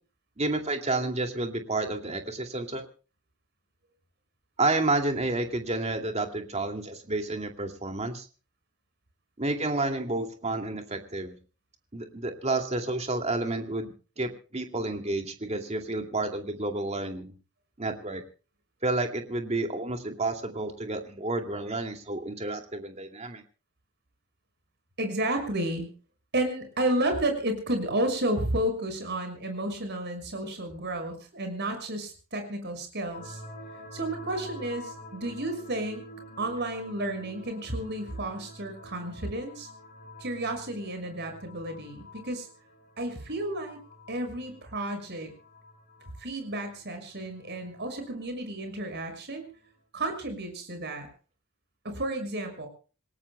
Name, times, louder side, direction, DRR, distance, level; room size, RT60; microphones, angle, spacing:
voice 1, 0.4-2.9 4.6-8.3 9.4-11.3 11.9-17.3 17.8-18.2 18.8-23.4, right 2 dB, 30° right, 5 dB, 2.4 m, -30 dB
voice 2, 25.0-25.9 26.3-33.4 33.9-36.0 36.4-39.7 40.2-42.5 43.0-43.8 44.1-45.3 46.2-49.5 49.9-51.1 51.8-52.7, right 1 dB, 50° right, 6 dB, 6.1 m, -32 dB
sound 1, 33.1-49.7, equal, 40° left, 6.4 m, -48 dB
27.5 x 18.0 x 2.2 m, 0.38 s
head